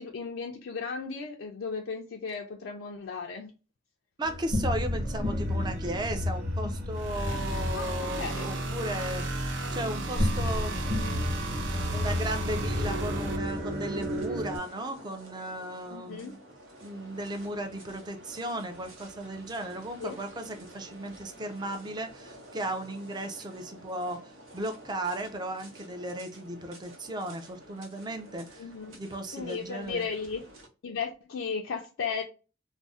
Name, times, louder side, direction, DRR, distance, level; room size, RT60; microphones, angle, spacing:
voice 1, 0.0-3.5 7.7-8.5 15.9-16.4 20.0-20.2 28.6-29.0 29.3-30.5 30.8-32.2, left 5 dB, 80° left, 0.4 m, -35 dB
voice 2, 4.2-9.4 9.7-10.8 11.9-16.4 16.8-28.6 28.9-30.1, right 1 dB, 20° right, 0.4 m, -36 dB
sound 1, 4.2-14.6, left 1 dB, 40° right, 1.0 m, -32 dB
sound 2, 6.9-13.4, right 2 dB, 65° right, 0.6 m, -34 dB
sound 3, 11.7-30.7, right 1 dB, 90° right, 0.9 m, -50 dB
2.5 x 2.0 x 3.5 m
head